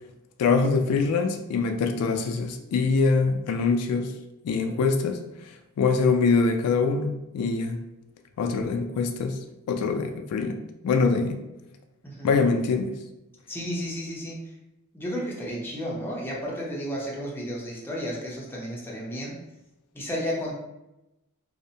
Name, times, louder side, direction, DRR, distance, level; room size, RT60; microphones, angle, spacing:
voice 1, 0.4-4.1 4.4-5.2 5.5-7.8 8.4-9.4 9.7-11.4 12.2-13.0, left 4 dB, 80° left, 9 dB, 0.3 m, -24 dB
voice 2, 12.0-12.4 13.5-14.5 14.9-19.4 19.9-20.5, equal, 10° left, -4 dB, 0.5 m, -32 dB
2.5 x 2.0 x 2.7 m, 0.92 s
head